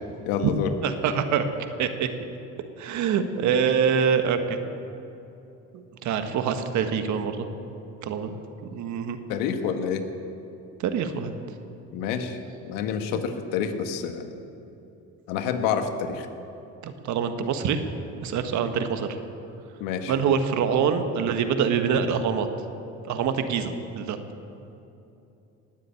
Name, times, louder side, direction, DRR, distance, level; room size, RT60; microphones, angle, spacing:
voice 1, 0.2-0.7 9.3-10.1 11.9-12.4 12.6-14.3 15.3-16.3 19.8-20.1, left 7 dB, 85° left, 7 dB, 1.4 m, -28 dB
voice 2, 0.8-2.1 2.8-4.6 6.0-7.5 8.0-8.3 8.7-9.2 10.8-11.3 13.1-13.2 16.8-17.8 18.2-19.1 20.1-22.5 23.1-24.2, right 7 dB, 65° right, 8 dB, 1.5 m, -25 dB
19.0 x 7.6 x 8.6 m, 2.8 s
cardioid pair, 100°, 32 cm